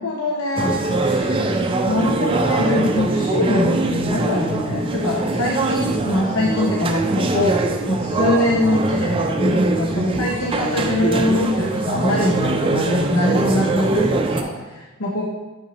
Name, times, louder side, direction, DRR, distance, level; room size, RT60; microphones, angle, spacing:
voice 1, 0.0-1.6 1.9-7.6 7.9-15.2, left 1 dB, 70° left, -1 dB, 0.7 m, -23 dB
sound 1, 0.6-14.4, right 2 dB, 25° right, 0.4 m, -22 dB
6.6 x 5.8 x 2.9 m, 1.2 s
head